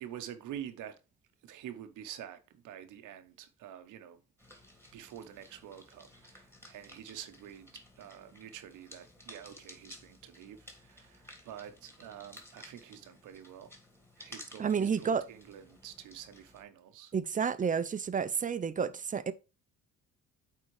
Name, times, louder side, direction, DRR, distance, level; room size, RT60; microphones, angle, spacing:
voice 1, 0.0-1.0 1.4-4.2 4.9-13.7 14.2-17.1, right 10 dB, 85° right, 1.0 m, -47 dB
sound 1, 4.4-16.6, left 1 dB, 10° left, 1.9 m, -55 dB
voice 2, 14.6-15.2 17.1-19.3, right 6 dB, 25° right, 0.5 m, -30 dB
8.9 x 3.8 x 3.2 m
cardioid pair, 90°, 30 cm